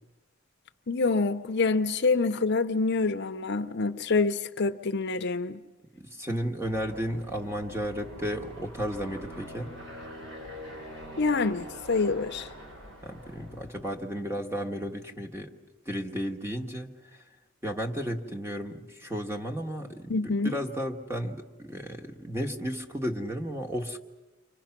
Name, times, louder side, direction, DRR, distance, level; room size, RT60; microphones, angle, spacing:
voice 1, 0.9-5.6 11.2-12.5 20.1-20.6, left 3 dB, 55° left, 0.7 m, -26 dB
voice 2, 5.9-9.7 13.0-15.5 15.8-16.9 17.6-24.0, equal, 10° right, 1.6 m, -33 dB
Aircraft, 6.6-13.9, equal, 70° right, 6.7 m, -44 dB
30.0 x 25.0 x 6.0 m
head